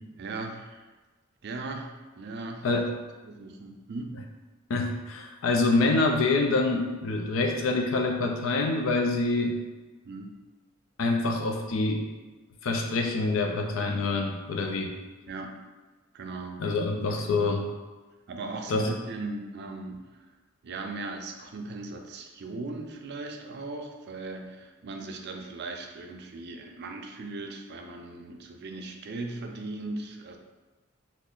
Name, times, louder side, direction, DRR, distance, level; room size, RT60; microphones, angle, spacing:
voice 1, 0.2-0.9 1.4-2.8 3.2-4.2 10.1-10.3 15.3-15.5 16.1-16.7 17.0-17.6 18.3-20.3 20.6-30.4, right 3 dB, 50° right, 3 dB, 0.4 m, -38 dB
voice 2, 4.7-9.6 11.0-12.0 12.6-14.9 16.6-17.6 18.7-18.9, left 3 dB, 70° left, 2 dB, 0.4 m, -26 dB
2.9 x 2.5 x 3.8 m, 1.2 s
head